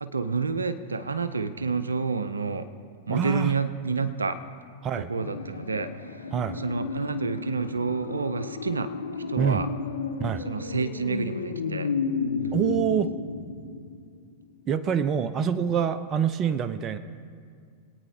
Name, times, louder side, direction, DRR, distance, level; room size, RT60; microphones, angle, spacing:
voice 1, 0.0-2.7 3.1-4.4 5.0-6.2 6.5-8.9 9.3-9.7 10.4-11.9, right 4 dB, 85° right, 12 dB, 0.5 m, -29 dB
voice 2, 3.1-3.5 4.8-5.1 6.3-6.6 9.4-9.6 10.2-10.5 12.5-13.1 14.7-17.0, right 8 dB, 30° right, 11 dB, 0.6 m, -26 dB
sound 1, 5.2-14.3 14.6-14.7, left 5 dB, 85° left, 0.7 m, -33 dB
21.5 x 9.2 x 2.8 m, 2.1 s
hypercardioid pair, 100°, 0 cm